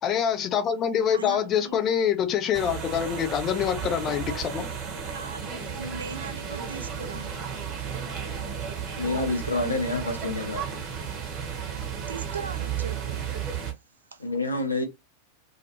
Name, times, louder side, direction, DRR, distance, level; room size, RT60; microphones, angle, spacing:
voice 1, 0.0-4.7, left 8 dB, 30° left, 0.4 m, -25 dB
voice 2, 1.1-1.9 5.1-7.4 12.1-13.7 14.1-14.3, right 5 dB, 70° right, 0.3 m, -39 dB
sound 1, 2.5-13.7, right 7 dB, 35° right, 0.8 m, -33 dB
voice 3, 9.0-10.7 14.2-14.8, left 2 dB, 80° left, 0.6 m, -28 dB
2.3 x 2.1 x 2.7 m
figure-of-eight pair, 90°, 0 cm